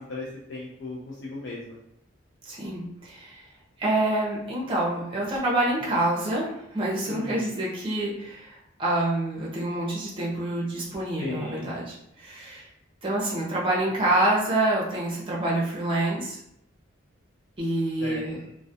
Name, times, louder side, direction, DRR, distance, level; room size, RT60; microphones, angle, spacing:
voice 1, 0.1-1.8 7.1-7.5 11.2-11.7 18.0-18.2, left 2 dB, 60° left, -5 dB, 0.4 m, -36 dB
voice 2, 2.4-3.4 3.8-12.7 13.0-16.4 17.6-18.4, right 1 dB, 25° right, -5 dB, 0.6 m, -27 dB
2.2 x 2.1 x 2.7 m, 0.77 s
head